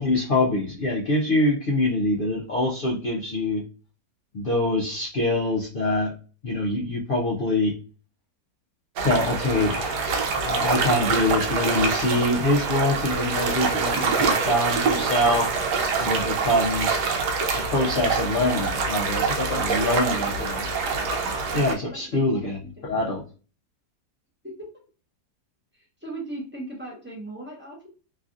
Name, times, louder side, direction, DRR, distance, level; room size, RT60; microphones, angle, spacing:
voice 1, 0.0-3.6 4.3-6.1 6.4-7.7 9.0-10.1 10.3-15.5 16.0-17.1 17.5-20.3 21.5-22.6 22.8-23.2, left 1 dB, 85° left, -4 dB, 0.4 m, -24 dB
sound 1, 9.0-21.7, right 4 dB, 85° right, 1.2 m, -25 dB
voice 2, 19.6-20.4 21.9-22.9 24.4-24.7 25.7-27.9, right 1 dB, 15° right, -3 dB, 0.4 m, -39 dB
3.2 x 2.4 x 2.5 m, 0.36 s
omnidirectional pair, 1.8 m